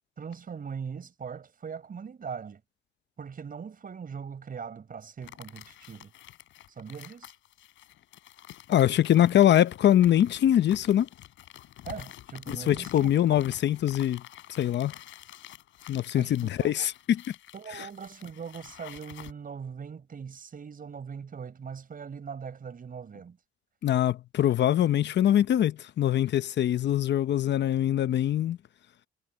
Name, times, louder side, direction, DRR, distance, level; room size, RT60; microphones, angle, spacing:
voice 1, 0.2-2.6 3.2-6.1 6.8-7.3 11.8-13.1 16.1-16.9 17.5-23.4, right 6 dB, 45° right, 5.7 m, -40 dB
sound 1, 5.2-19.3, left 13 dB, 85° left, 3.7 m, -48 dB
voice 2, 8.7-11.1 12.5-14.2 14.5-14.9 15.9-17.2 17.7-17.9 23.8-28.6, left 11 dB, 65° left, 0.8 m, -23 dB
cardioid pair, 90°, 20 cm